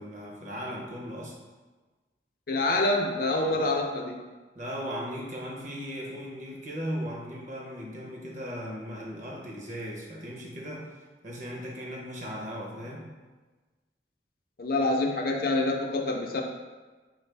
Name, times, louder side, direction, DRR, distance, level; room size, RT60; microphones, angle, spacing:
voice 1, 0.0-1.4 3.5-3.7 4.5-13.1, equal, 45° right, -2 dB, 0.7 m, -37 dB
voice 2, 2.5-4.2 14.6-16.4, left 2 dB, 55° left, 1 dB, 0.5 m, -26 dB
4.5 x 2.4 x 3.3 m, 1.3 s
head